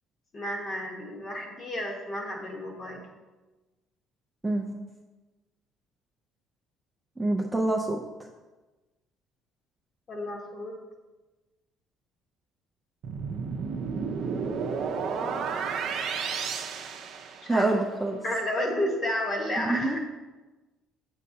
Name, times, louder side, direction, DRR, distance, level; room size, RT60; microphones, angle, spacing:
voice 1, 0.3-3.0 10.1-10.8 15.1-15.6 17.4-17.7 18.2-20.0, left 1 dB, 30° left, 1 dB, 1.1 m, -32 dB
voice 2, 7.2-8.0 17.5-18.2 19.6-20.0, right 2 dB, 10° right, 0 dB, 0.4 m, -26 dB
sound 1, 13.0-17.8, right 5 dB, 55° right, 0.6 m, -32 dB
6.6 x 6.4 x 2.7 m, 1.2 s
cardioid pair, 145°, 0 cm